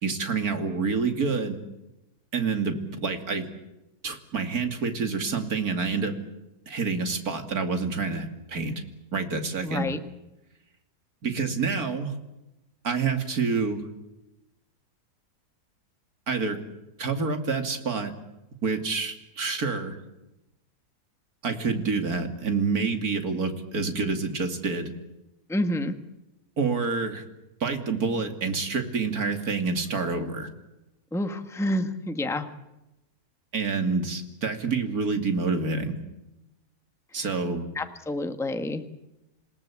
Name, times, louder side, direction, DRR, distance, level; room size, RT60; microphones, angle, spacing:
voice 1, 0.0-1.6 2.3-3.5 4.0-6.2 6.7-8.7 9.1-9.9 11.2-12.1 12.8-13.8 16.3-16.6 17.0-18.1 18.6-20.0 21.4-24.9 26.6-27.2 27.6-30.5 33.5-36.0 37.1-37.7, right 4 dB, 65° right, 6 dB, 3.1 m, -27 dB
voice 2, 9.6-10.0 25.5-25.9 31.1-32.5 37.7-38.8, left 1 dB, ahead, 8 dB, 1.4 m, -28 dB
28.0 x 18.5 x 8.6 m, 0.95 s
omnidirectional pair, 1.7 m